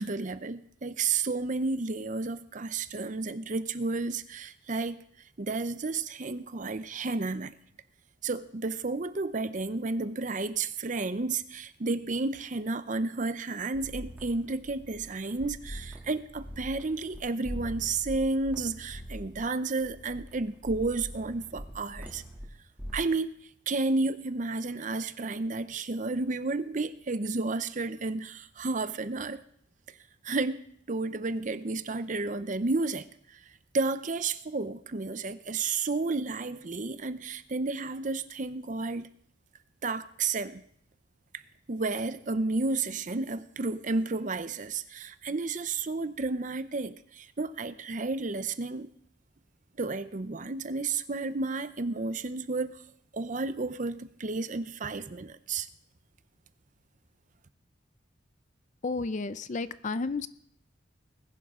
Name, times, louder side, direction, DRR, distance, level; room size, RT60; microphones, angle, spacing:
voice 1, 0.0-5.0 5.4-7.5 8.2-22.2 22.9-23.4 23.7-29.4 30.2-30.6 30.9-33.4 33.7-39.1 39.8-40.6 41.3-41.4 41.7-48.9 49.8-52.8 53.1-55.7, right 3 dB, 40° right, 13 dB, 0.7 m, -32 dB
sound 1, 13.7-17.2 17.4-22.4 22.8-22.9, equal, 10° right, 2.7 m, -43 dB
voice 2, 58.8-60.3, left 3 dB, 40° left, 14 dB, 0.5 m, -32 dB
20.5 x 11.0 x 3.7 m, 0.68 s
head